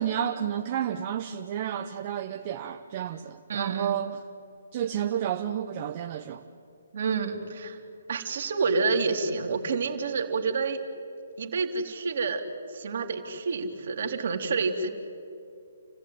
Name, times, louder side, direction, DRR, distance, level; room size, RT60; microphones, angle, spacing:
voice 1, 0.0-4.2 4.7-6.4, right 9 dB, 40° right, 1.0 m, -31 dB
voice 2, 3.5-3.9 6.9-7.8 8.1-10.8 11.4-12.4 12.7-14.9, right 4 dB, 60° right, 3.0 m, -28 dB
29.5 x 15.5 x 9.3 m
hypercardioid pair, 140°, 0 cm